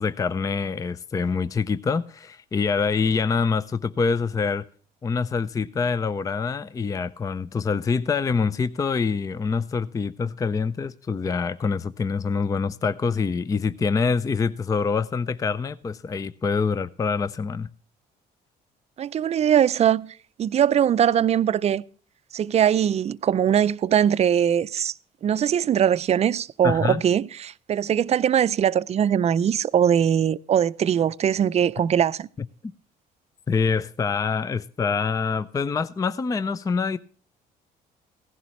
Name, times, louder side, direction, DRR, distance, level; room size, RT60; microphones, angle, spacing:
voice 1, 0.0-4.6 5.0-17.7 26.6-27.0 32.6-32.7 33.5-37.0, left 5 dB, 20° left, 0.4 m, -25 dB
voice 2, 19.0-21.8 22.3-24.9 25.2-32.3, right 9 dB, 40° right, 0.5 m, -21 dB
16.0 x 11.0 x 3.1 m
cardioid pair, 110°, 17 cm